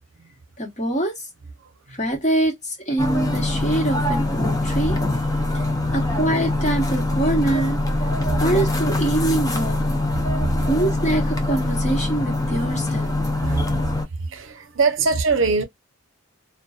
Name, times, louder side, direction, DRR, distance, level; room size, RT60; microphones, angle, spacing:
voice 1, 0.6-1.1 2.0-5.0 5.9-7.8 8.0-8.1 8.4-9.8 10.7-13.1, right 1 dB, 35° left, 1.1 m, -24 dB
sound 1, 3.0-14.1, left 2 dB, 15° left, 0.4 m, -23 dB
voice 2, 5.3-5.9 8.2-8.4 10.3-10.5 13.4-15.6, right 4 dB, 65° right, 0.7 m, -24 dB
2.5 x 2.2 x 2.3 m
head